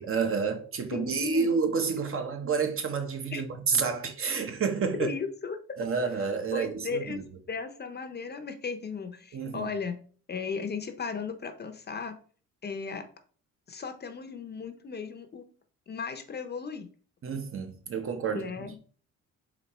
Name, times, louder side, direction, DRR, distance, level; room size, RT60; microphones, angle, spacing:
voice 1, 0.0-5.1 5.8-7.2 9.3-9.7 17.2-18.7, right 5 dB, 45° right, 0.9 m, -29 dB
voice 2, 0.9-1.5 3.3-3.4 5.0-5.6 6.5-7.2 7.5-10.0 10.3-12.2 12.6-13.1 13.7-15.5 15.9-16.9 18.3-18.8, left 5 dB, 35° left, 0.7 m, -36 dB
4.2 x 2.8 x 4.2 m
cardioid pair, 90°, 30 cm